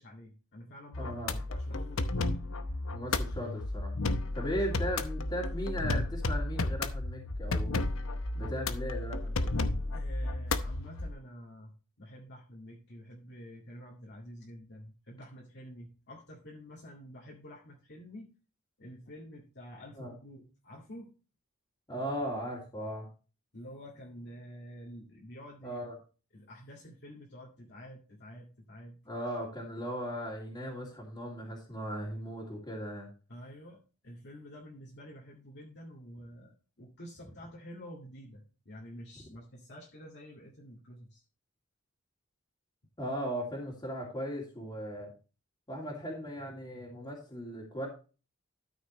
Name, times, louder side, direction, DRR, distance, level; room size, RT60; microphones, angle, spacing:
voice 1, 0.0-2.0 9.9-18.3 18.8-21.1 23.5-25.9 26.3-29.0 33.3-41.2, equal, 55° left, -3 dB, 2.1 m, -49 dB
sound 1, 0.9-11.1, left 2 dB, 75° left, 0.8 m, -33 dB
voice 2, 1.0-1.4 2.9-3.9 4.3-7.7 8.3-9.7 19.9-20.1 21.9-23.1 25.6-25.9 29.0-33.1 43.0-45.1 45.7-47.9, equal, 20° left, -5 dB, 2.6 m, -37 dB
12.5 x 6.4 x 3.1 m, 0.34 s
head